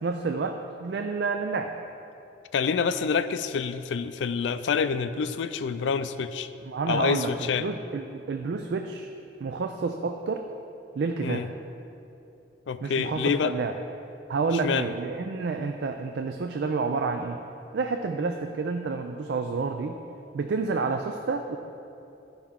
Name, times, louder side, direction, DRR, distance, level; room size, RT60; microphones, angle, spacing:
voice 1, 0.0-1.7 6.6-7.3 7.6-9.1 9.4-10.5 10.9-11.5 12.8-13.8 14.3-17.4 17.7-20.0 20.3-21.6, right 4 dB, 70° right, 5 dB, 0.4 m, -29 dB
voice 2, 2.5-6.5 6.9-7.7 11.2-11.5 12.7-13.6 14.6-14.9, left 6 dB, 85° left, 12 dB, 0.4 m, -27 dB
12.0 x 5.6 x 3.6 m, 2.8 s
head